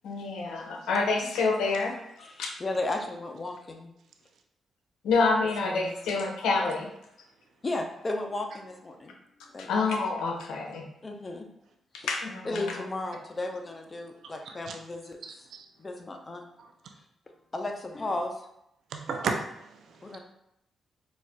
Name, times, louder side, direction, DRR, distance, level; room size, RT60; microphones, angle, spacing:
voice 1, 0.0-1.9 2.4-2.5 5.0-6.9 9.7-10.8 12.1-12.6, left 4 dB, 80° left, 2 dB, 0.5 m, -27 dB
voice 2, 2.2-3.9 5.6-6.0 7.6-9.2 9.5-9.7 11.0-11.5 12.0-12.1 12.4-15.2 15.8-16.4 17.5-18.4 20.0-20.2, left 2 dB, 35° left, 4 dB, 0.6 m, -34 dB
voice 3, 14.2-14.8 15.2-15.7 16.6-16.7 18.9-20.2, right 4 dB, 70° right, 3 dB, 0.4 m, -35 dB
4.2 x 2.4 x 2.2 m, 0.80 s
supercardioid pair, 55°, 0 cm